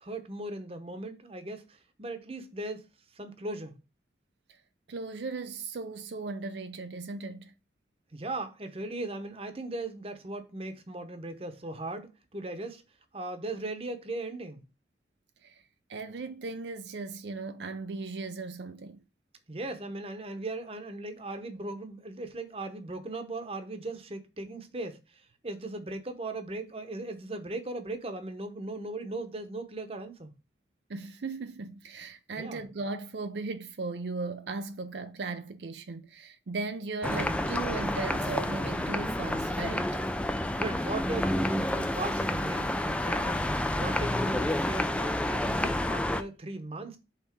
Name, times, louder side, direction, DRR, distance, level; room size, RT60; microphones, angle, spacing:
voice 1, 0.0-2.9 3.1-3.8 8.1-12.8 13.1-14.6 19.5-30.3 32.4-32.7 37.2-37.5 40.6-47.0, right 2 dB, 35° right, 1.0 m, -38 dB
voice 2, 4.9-7.5 15.4-15.6 15.9-19.0 30.9-40.0, right 3 dB, 75° right, 0.5 m, -37 dB
sound 1, 37.0-46.2, left 1 dB, 5° left, 0.4 m, -29 dB
5.8 x 4.0 x 6.0 m
head